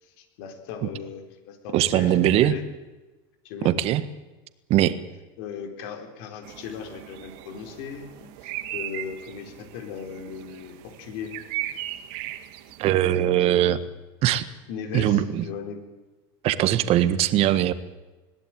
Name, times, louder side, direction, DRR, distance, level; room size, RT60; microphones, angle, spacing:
voice 1, 0.0-2.6 3.4-3.7 5.4-11.3 13.0-13.7 14.7-15.8, left 7 dB, 75° left, 5 dB, 4.3 m, -38 dB
voice 2, 1.7-2.5 3.6-4.0 4.7-5.0 12.8-13.8 14.2-14.5 14.9-15.4 16.4-17.7, right 12 dB, 55° right, 13 dB, 1.5 m, -21 dB
sound 1, 6.4-12.9, right 14 dB, 70° right, 1.6 m, -37 dB
21.5 x 16.0 x 9.2 m, 1.1 s
supercardioid pair, 110°, 12 cm